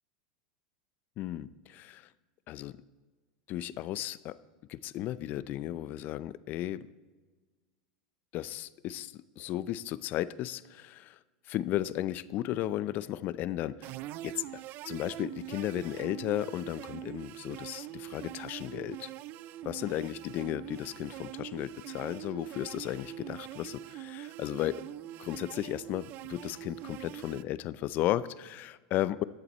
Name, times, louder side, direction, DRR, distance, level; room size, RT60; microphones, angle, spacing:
voice 1, 1.2-2.1 2.5-2.7 3.5-4.4 4.7-6.9 8.3-11.2 11.5-13.9 14.2-14.4 14.8-19.1 19.6-24.8 25.2-29.2, left 13 dB, 45° left, 17 dB, 0.5 m, -34 dB
sound 1, 13.8-27.4, right 14 dB, 45° right, 0.4 m, -43 dB
15.0 x 11.0 x 4.3 m, 1.3 s
supercardioid pair, 115°, 4 cm